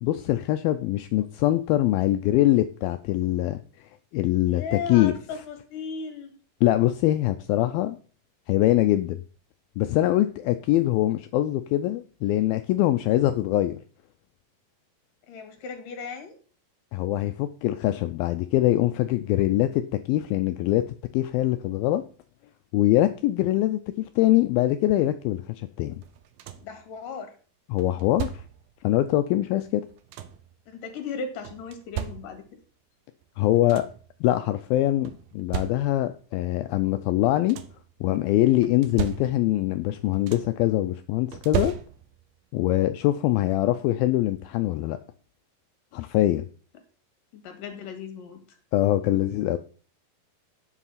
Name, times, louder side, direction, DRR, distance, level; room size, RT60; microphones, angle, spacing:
voice 1, 0.0-5.1 6.6-8.0 8.5-9.2 9.8-13.8 16.9-19.8 20.1-20.9 21.1-22.0 22.7-26.0 27.7-28.3 28.8-29.8 33.4-33.9 34.2-37.6 38.0-41.7 42.5-45.0 45.9-46.5 48.7-49.6, left 15 dB, 85° left, 10 dB, 2.1 m, -23 dB
voice 2, 4.4-6.3 15.3-16.4 26.6-27.3 30.7-32.4 47.3-48.6, left 5 dB, 55° left, 7 dB, 3.4 m, -36 dB
sound 1, 26.0-26.8 27.8-28.7 29.7-30.5 31.5-32.7 33.2-33.3 33.5-34.1 35.1-36.2 37.2-37.9 38.6-39.7 39.9-40.7 41.3-42.3 43.6-43.7 44.2-44.4, right 10 dB, 75° right, 2.2 m, -35 dB
9.8 x 7.6 x 5.7 m, 0.40 s
omnidirectional pair, 4.9 m